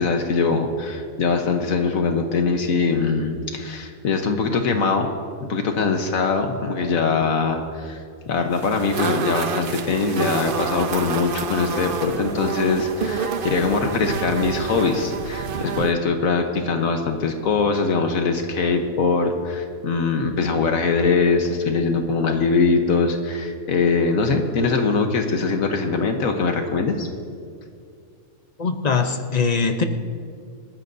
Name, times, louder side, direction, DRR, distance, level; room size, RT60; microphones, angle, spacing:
voice 1, 0.0-5.1 5.4-27.1, left 4 dB, 75° left, 4 dB, 1.4 m, -22 dB
sound 1, 8.5-15.9, right 6 dB, 45° right, 0.8 m, -28 dB
voice 2, 28.6-29.8, left 5 dB, 40° left, 7 dB, 0.7 m, -21 dB
27.5 x 14.0 x 2.7 m, 2.3 s
omnidirectional pair, 1.5 m